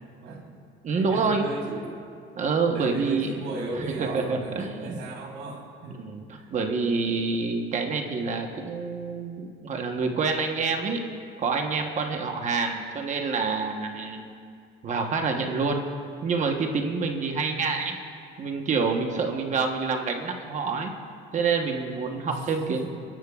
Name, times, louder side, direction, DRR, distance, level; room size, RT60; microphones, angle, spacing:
voice 1, 0.2-0.5 0.9-1.9 2.7-6.0 6.4-6.5 22.3-22.9, right 2 dB, 70° right, 1 dB, 2.6 m, -36 dB
voice 2, 0.8-1.4 2.3-3.3 4.0-5.0 6.0-11.0 11.4-14.3 14.8-15.8 16.2-17.9 18.4-20.9 21.3-22.9, right 4 dB, 35° right, 3 dB, 1.0 m, -27 dB
28.0 x 12.0 x 2.4 m, 2.3 s
cardioid pair, 155°, 20 cm